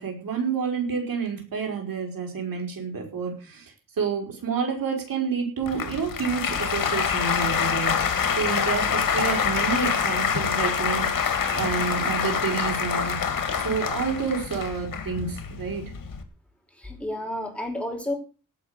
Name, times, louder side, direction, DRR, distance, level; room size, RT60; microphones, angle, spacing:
voice 1, 0.0-15.9, right 5 dB, 85° right, 2 dB, 5.2 m, -29 dB
Applause, 5.6-16.2, left 7 dB, 85° left, 2.1 m, -26 dB
voice 2, 16.8-18.1, left 1 dB, 5° left, 1 dB, 4.8 m, -31 dB
17.5 x 6.1 x 8.1 m, 0.35 s
wide cardioid pair, 110°, 33 cm